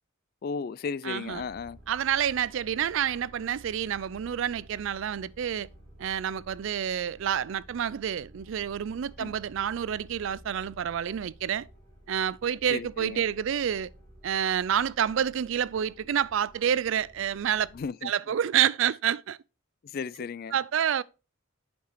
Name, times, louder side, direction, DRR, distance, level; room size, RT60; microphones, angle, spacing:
voice 1, 0.4-1.8 9.2-9.3 12.7-13.2 17.7-18.1 19.8-20.6, left 5 dB, 45° left, 0.3 m, -35 dB
voice 2, 1.0-1.4 1.9-5.7 6.0-11.7 12.1-13.9 14.2-17.7 18.0-19.4 20.5-21.0, right 9 dB, 65° right, 0.3 m, -28 dB
sound 1, 1.2-17.9, right 1 dB, 30° right, 3.1 m, -53 dB
8.5 x 5.9 x 3.1 m
head